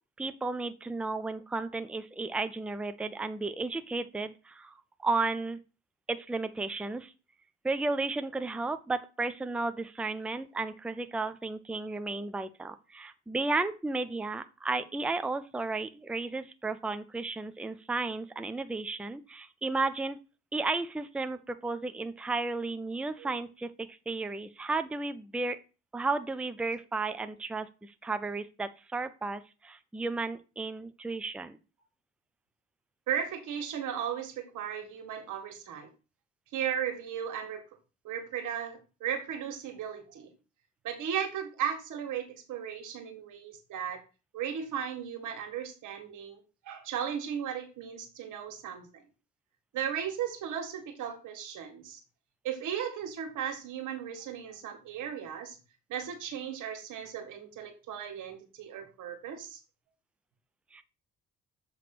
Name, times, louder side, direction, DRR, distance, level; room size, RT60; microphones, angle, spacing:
voice 1, 0.2-4.8 5.0-5.6 6.1-7.1 7.6-20.2 20.5-25.6 25.9-31.6 60.7-60.8, right 3 dB, 5° right, 10 dB, 0.5 m, -33 dB
voice 2, 33.1-35.9 36.5-37.6 38.0-40.3 40.8-44.0 44.3-46.4 46.7-48.9 49.7-52.0 52.4-55.6 55.9-59.6, right 8 dB, 85° right, 4 dB, 1.8 m, -36 dB
7.6 x 3.2 x 5.9 m, 0.32 s
cardioid pair, 90°, 30 cm